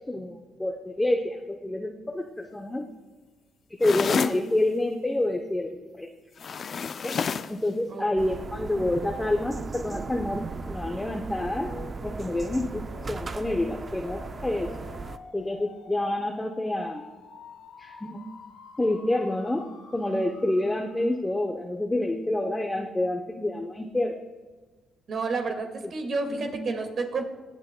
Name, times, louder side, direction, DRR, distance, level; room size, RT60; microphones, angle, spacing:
voice 1, 0.1-2.8 3.8-6.1 7.0-7.2 7.5-11.7 12.0-12.8 13.1-14.7 15.3-17.0 17.8-18.2 18.8-19.7 19.9-24.2 26.3-26.5, left 1 dB, 15° left, 2 dB, 0.7 m, -28 dB
sound 1, 3.8-4.4 6.4-7.6, left 6 dB, 50° left, 0.4 m, -29 dB
sound 2, 8.2-15.2, right 4 dB, 35° right, 0.5 m, -37 dB
sound 3, 11.3-21.1, left 4 dB, 75° left, 2.0 m, -48 dB
voice 2, 25.1-27.2, right 3 dB, 55° right, 4 dB, 1.9 m, -30 dB
20.5 x 8.2 x 2.2 m, 1.3 s
cardioid pair, 90°, 0 cm